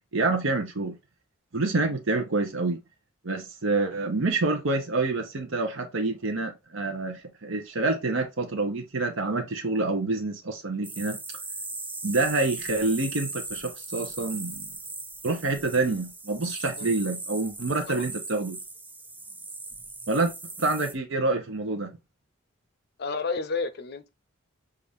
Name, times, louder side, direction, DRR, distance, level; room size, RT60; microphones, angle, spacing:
voice 1, 0.1-1.0 1.5-2.8 3.2-11.2 12.0-14.7 15.2-18.6 20.1-20.3 20.6-21.9, right 3 dB, 75° right, 0.8 m, -27 dB
sound 1, 10.8-20.9, right 3 dB, 10° right, 0.3 m, -38 dB
voice 2, 23.0-24.1, left 4 dB, 50° left, 0.6 m, -31 dB
5.7 x 2.5 x 3.5 m
head